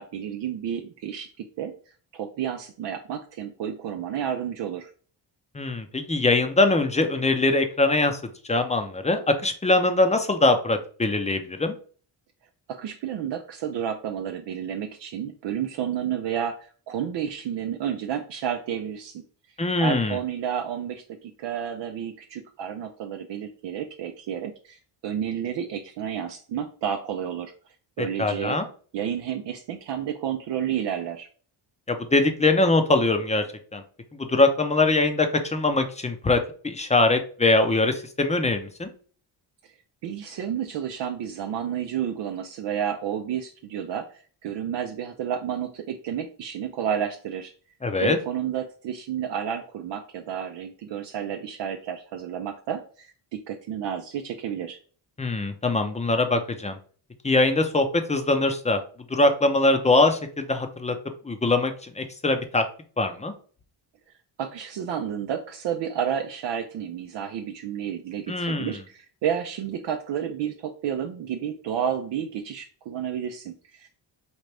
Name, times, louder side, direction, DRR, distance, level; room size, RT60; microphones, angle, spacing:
voice 1, 0.0-1.7 2.1-4.9 12.7-19.2 19.8-27.5 28.0-28.6 28.9-31.3 40.0-47.5 48.0-54.8 64.4-73.9, right 9 dB, 65° right, 4 dB, 0.6 m, -31 dB
voice 2, 5.5-8.2 8.4-11.7 19.6-20.2 28.0-28.6 31.9-33.4 33.7-33.8 34.1-38.9 47.8-48.2 55.2-56.8 57.2-58.8 59.1-60.9 61.2-62.6 63.0-63.3 68.3-68.8, left 2 dB, 15° left, 7 dB, 0.6 m, -22 dB
4.4 x 2.5 x 3.3 m, 0.42 s
cardioid pair, 70°, 47 cm